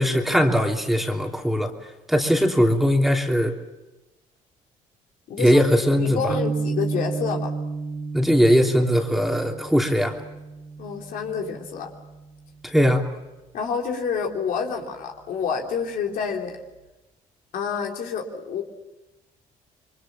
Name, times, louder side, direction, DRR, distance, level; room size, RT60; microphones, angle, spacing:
voice 1, 0.0-1.7 2.1-3.6 5.4-6.2 8.1-10.2 12.6-13.1, equal, ahead, 2 dB, 3.1 m, -20 dB
voice 2, 5.3-5.6 6.0-7.5 10.8-11.9 13.5-16.6 17.5-18.6, left 6 dB, 70° left, 1 dB, 3.6 m, -28 dB
sound 1, 6.3-12.7, right 4 dB, 65° right, 3.8 m, -32 dB
28.5 x 23.0 x 7.1 m, 1.0 s
cardioid pair, 90°, 15 cm